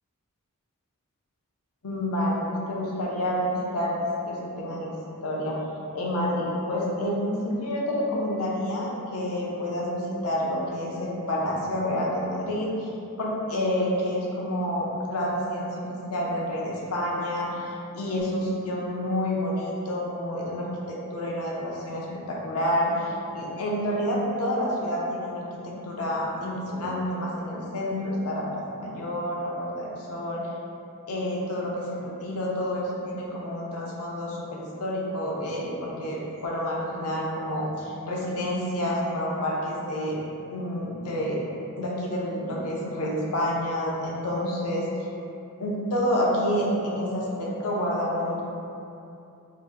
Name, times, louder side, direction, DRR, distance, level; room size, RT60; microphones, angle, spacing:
voice 1, 1.8-3.9 4.3-4.9 5.2-5.6 5.9-12.9 13.2-30.5 31.1-40.2 40.5-41.5 41.8-45.1 45.6-48.4, equal, 90° left, -4 dB, 0.7 m, -29 dB
2.9 x 2.6 x 3.6 m, 2.7 s
head